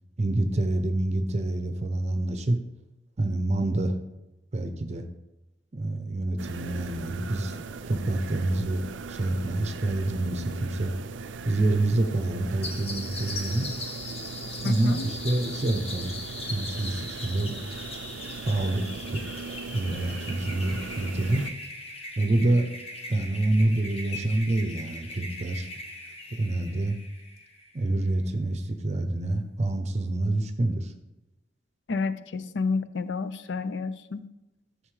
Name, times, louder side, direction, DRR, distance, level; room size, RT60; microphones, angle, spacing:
voice 1, 0.2-2.6 3.2-3.9 4.5-5.1 5.7-7.6 7.9-10.9 11.4-13.7 14.6-16.1 16.5-17.5 18.4-18.8 19.1-19.2 19.7-21.4 22.2-22.7 23.1-25.7 26.3-26.9 27.7-30.9, right 2 dB, 40° right, 7 dB, 0.6 m, -27 dB
sound 1, 6.4-21.5, right 4 dB, 85° right, 0.4 m, -39 dB
sound 2, 12.6-27.8, left 2 dB, 35° left, 1.0 m, -40 dB
voice 2, 14.6-15.1 31.9-34.3, left 4 dB, 70° left, 13 dB, 0.5 m, -30 dB
11.0 x 6.5 x 3.2 m, 0.96 s
head